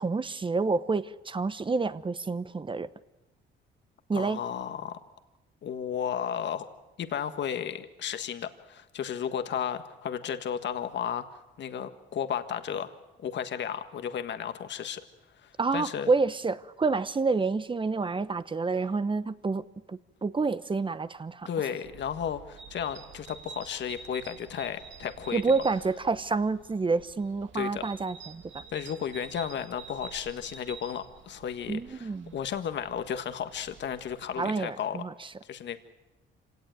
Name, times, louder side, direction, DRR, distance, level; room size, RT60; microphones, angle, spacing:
voice 1, 0.0-2.9 4.1-4.4 15.6-19.6 19.9-21.5 25.3-28.6 31.7-32.4 34.4-35.3, right 4 dB, 25° right, 14 dB, 0.9 m, -28 dB
voice 2, 4.1-5.0 5.6-6.7 7.0-11.2 11.6-12.9 13.2-15.0 15.4-16.1 21.5-25.4 27.5-27.8 28.7-35.0 35.4-35.8, left 8 dB, 65° left, 9 dB, 1.6 m, -34 dB
sound 1, 21.8-34.5, right 6 dB, 70° right, 1.9 m, -49 dB
26.0 x 18.0 x 9.3 m, 1.0 s
cardioid pair, 90°, 20 cm